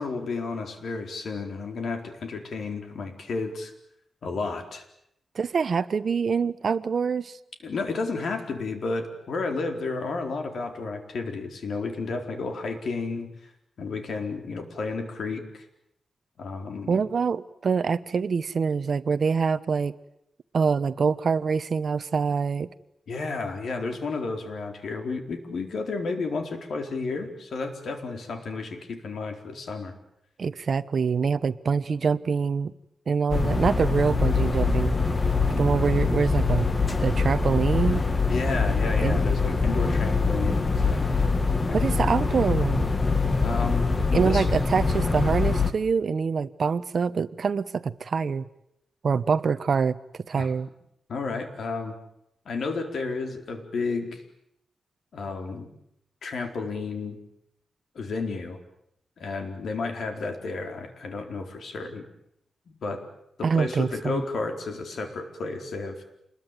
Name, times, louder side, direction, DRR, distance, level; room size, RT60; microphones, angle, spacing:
voice 1, 0.0-3.7 4.2-4.8 7.6-13.3 13.8-15.6 16.4-17.0 23.1-29.9 38.3-41.1 41.6-41.8 43.4-44.4 50.4-50.5 51.1-52.0 52.5-54.2 55.1-55.7 56.2-57.2 57.9-58.6 59.2-62.0 62.7-63.0 63.4-65.9, left 3 dB, 70° left, 5 dB, 4.4 m, -32 dB
voice 2, 5.3-7.4 16.9-19.9 20.5-22.7 30.4-32.7 33.1-35.0 35.6-36.7 37.0-38.0 39.0-39.2 41.7-42.8 44.1-48.4 49.0-50.0 50.3-50.7 63.4-64.2, right 5 dB, 55° right, 14 dB, 1.1 m, -25 dB
sound 1, 33.3-45.7, left 4 dB, 25° left, 2.0 m, -24 dB
28.0 x 21.5 x 9.2 m, 0.79 s
wide cardioid pair, 135°, 0 cm